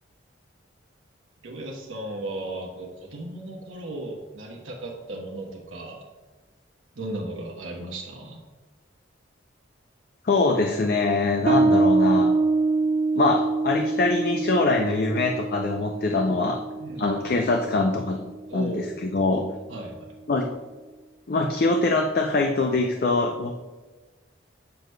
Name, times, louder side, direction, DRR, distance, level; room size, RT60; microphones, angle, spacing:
voice 1, 1.4-6.0 7.0-8.4 16.8-17.3 18.5-19.0 19.7-20.1, right 1 dB, 85° right, -2 dB, 1.0 m, -36 dB
voice 2, 10.2-12.3 13.2-16.6 17.0-18.2 18.5-19.4 20.3-20.5 21.3-23.5, left 3 dB, 50° left, 3 dB, 0.4 m, -23 dB
Bass guitar, 11.5-18.6, right 3 dB, 40° right, 0.3 m, -25 dB
7.7 x 6.7 x 2.2 m, 1.3 s
head